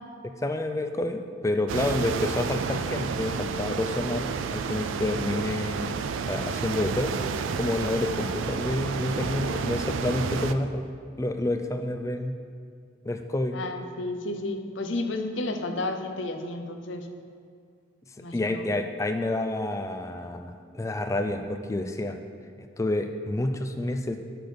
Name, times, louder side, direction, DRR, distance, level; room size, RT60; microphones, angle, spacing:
voice 1, 0.2-10.9 11.2-12.4 13.1-13.6 18.3-22.2 22.8-24.2, left 1 dB, 15° left, 7 dB, 0.3 m, -29 dB
sound 1, 1.7-10.5, right 5 dB, 80° right, 0.4 m, -30 dB
voice 2, 13.5-17.1 18.2-18.7, left 2 dB, 75° left, 6 dB, 0.7 m, -32 dB
6.5 x 6.0 x 5.1 m, 2.2 s
head